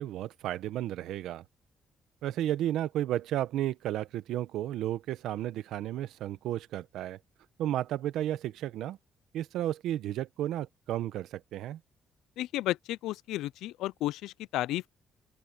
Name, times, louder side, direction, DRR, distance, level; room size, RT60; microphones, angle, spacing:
voice 1, 0.0-1.4 2.2-7.2 7.6-9.0 9.3-11.8, right 12 dB, 85° right, 1.1 m, -33 dB
voice 2, 12.4-14.9, left 15 dB, 90° left, 0.4 m, -33 dB
open air
cardioid pair, 90°, 0 cm